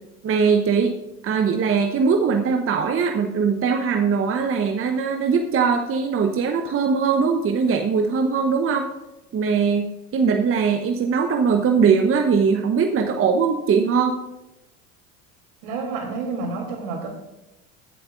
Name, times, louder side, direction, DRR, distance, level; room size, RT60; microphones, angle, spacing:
voice 1, 0.2-0.9 1.2-8.9 9.3-14.1, right 5 dB, 30° right, 5 dB, 1.0 m, -21 dB
voice 2, 15.6-17.1, right 4 dB, 65° right, 1 dB, 3.3 m, -29 dB
21.5 x 7.9 x 2.5 m, 0.96 s
hypercardioid pair, 75°, 43 cm